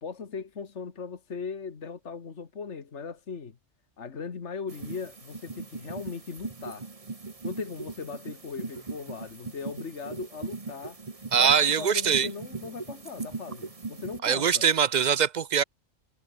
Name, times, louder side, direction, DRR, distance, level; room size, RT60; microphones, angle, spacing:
voice 1, 0.0-3.6 4.0-6.9 7.4-11.0 11.4-14.7, left 5 dB, 70° left, 2.0 m, -39 dB
sound 1, 4.7-14.2, right 3 dB, 30° right, 1.4 m, -40 dB
voice 2, 11.3-12.3 14.2-15.6, right 7 dB, 50° right, 0.6 m, -22 dB
omnidirectional pair, 1.3 m